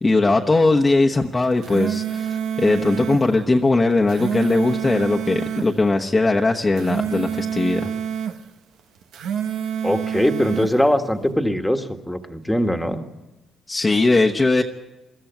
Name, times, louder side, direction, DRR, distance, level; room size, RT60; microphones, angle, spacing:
voice 1, 0.0-7.9 13.7-14.6, left 2 dB, 25° left, 0 dB, 1.1 m, -19 dB
sound 1, 1.4-3.2 3.9-5.7 6.6-8.4 9.0-10.7, right 8 dB, 85° right, 1.2 m, -27 dB
voice 2, 9.8-13.0, equal, 5° left, 6 dB, 1.6 m, -21 dB
22.0 x 13.5 x 9.3 m, 1.1 s
cardioid pair, 90°, 0 cm